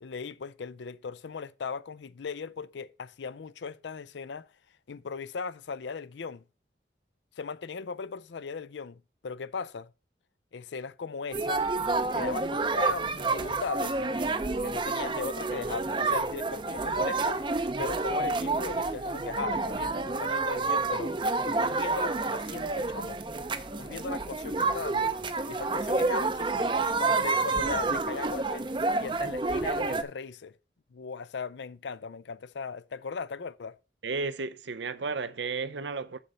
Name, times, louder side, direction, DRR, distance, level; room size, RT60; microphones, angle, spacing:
voice 1, 0.0-4.5 4.9-6.4 7.4-9.9 10.5-11.7 12.1-14.0 14.6-17.4 17.8-21.2 21.4-23.2 23.8-25.2 25.4-26.7 27.0-28.7 29.0-30.5 30.9-33.8, left 5 dB, 80° left, 0.5 m, -38 dB
sound 1, 11.3-30.0, right 3 dB, 25° right, 0.5 m, -29 dB
voice 2, 34.0-36.2, right 4 dB, 80° right, 0.6 m, -33 dB
7.1 x 5.6 x 6.4 m
head